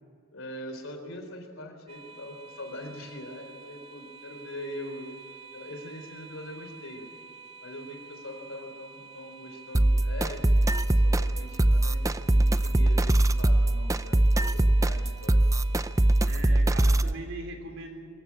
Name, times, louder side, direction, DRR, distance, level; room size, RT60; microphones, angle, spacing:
voice 1, 0.3-5.2 5.5-7.0 7.6-15.4, left 1 dB, 75° left, 5 dB, 3.7 m, -42 dB
sound 1, 1.9-16.3, right 5 dB, 30° right, 1.9 m, -49 dB
sound 2, 9.7-17.1, right 1 dB, 15° right, 0.5 m, -22 dB
voice 2, 16.2-18.0, right 2 dB, 75° right, 4 dB, 3.4 m, -40 dB
24.0 x 14.5 x 8.7 m, 2.5 s
head